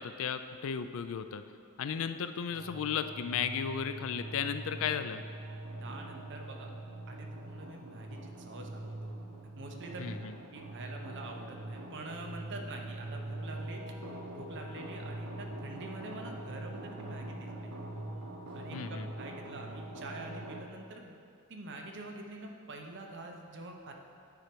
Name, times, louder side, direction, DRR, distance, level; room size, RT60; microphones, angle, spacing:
voice 1, 0.0-1.4 1.8-5.2 10.0-10.3 18.7-19.1, left 7 dB, 65° left, 10 dB, 0.4 m, -35 dB
sound 1, 2.5-20.7, right 1 dB, 85° right, 0.9 m, -43 dB
voice 2, 5.8-6.7 7.1-9.1 9.6-10.2 10.5-13.8 14.3-17.7 18.5-21.1 21.5-23.9, right 2 dB, 55° right, 2 dB, 0.8 m, -46 dB
9.3 x 4.4 x 5.2 m, 2.4 s
head